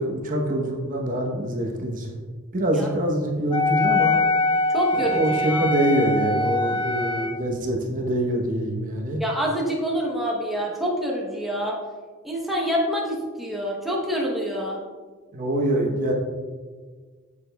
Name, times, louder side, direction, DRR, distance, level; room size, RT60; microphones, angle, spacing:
voice 1, 0.0-2.1 2.5-4.1 4.9-9.2 15.3-16.1, equal, 40° right, 0 dB, 0.9 m, -25 dB
Wind instrument woodwind instrument, 3.5-7.4, left 2 dB, 25° left, 0.3 m, -23 dB
voice 2, 4.7-5.7 9.2-11.8 12.2-14.8, equal, ahead, -3 dB, 0.8 m, -26 dB
8.2 x 7.2 x 2.3 m, 1.5 s
head